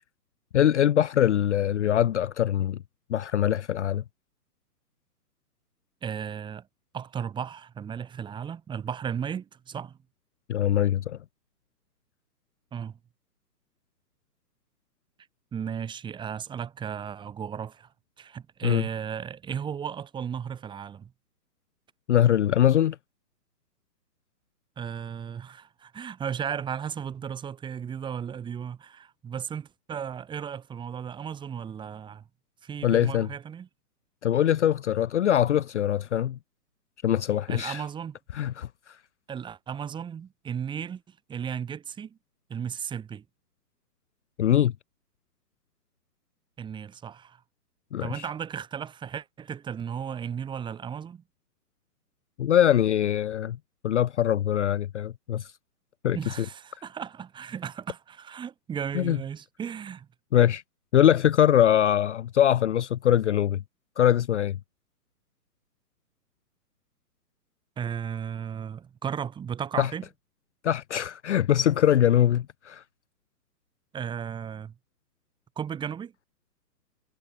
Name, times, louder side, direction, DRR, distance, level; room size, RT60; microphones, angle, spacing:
voice 1, 0.5-2.8 3.1-4.0 10.5-11.2 18.6-18.9 22.1-23.0 32.8-33.3 34.2-36.4 37.0-37.8 38.3-38.7 44.4-44.7 47.9-48.3 52.4-53.6 53.8-55.5 56.0-56.2 58.9-59.2 60.3-60.6 60.9-63.6 64.0-64.6 69.7-69.9 70.6-72.8, left 10 dB, 45° left, 0.9 m, -22 dB
voice 2, 6.0-6.7 6.9-10.0 12.7-13.0 15.5-17.9 18.2-21.1 24.8-32.2 32.6-33.7 37.5-38.2 39.3-42.2 42.5-43.2 46.6-47.4 48.0-51.2 56.1-60.1 67.8-70.0 73.9-74.7 75.6-76.1, right 8 dB, 10° right, 3.8 m, -35 dB
hypercardioid pair, 155°, 48 cm